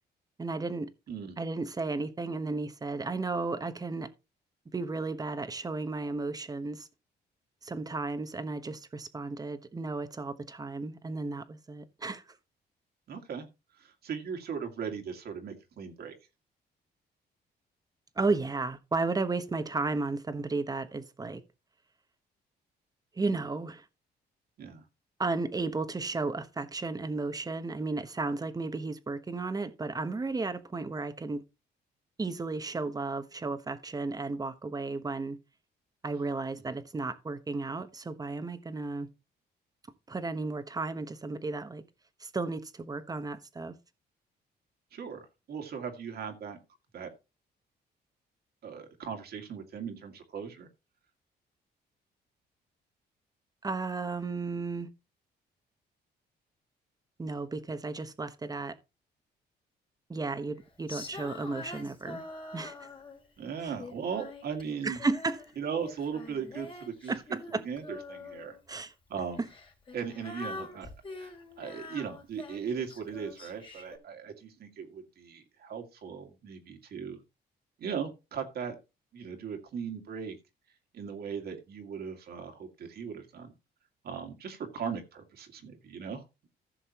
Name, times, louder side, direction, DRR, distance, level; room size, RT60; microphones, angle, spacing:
voice 1, 0.4-0.9 1.4-4.1 4.7-6.9 7.6-12.2 18.2-21.4 23.2-23.8 25.2-31.4 32.2-35.4 36.0-39.1 40.1-41.8 42.2-43.7 53.6-54.9 57.2-58.8 60.1-62.2 62.5-62.9 63.6-63.7 64.8-65.4 67.1-67.6 68.7-68.9 69.4-69.5, right 3 dB, 20° right, 1.1 m, -33 dB
voice 2, 13.1-13.5 13.8-16.1 24.6-24.8 36.7-36.8 44.9-46.6 46.9-47.1 48.6-50.7 63.4-65.0 65.6-67.1 67.6-68.6 69.1-69.4 69.9-70.9 71.2-77.2 77.8-78.8 79.1-80.4 80.9-83.5 84.0-86.2, right 7 dB, 65° right, 2.2 m, -38 dB
Female singing, 60.9-63.3 63.8-65.5 65.8-68.6 69.4-74.0, left 3 dB, 30° left, 2.8 m, -45 dB
15.0 x 6.5 x 3.0 m
cardioid pair, 110°, 18 cm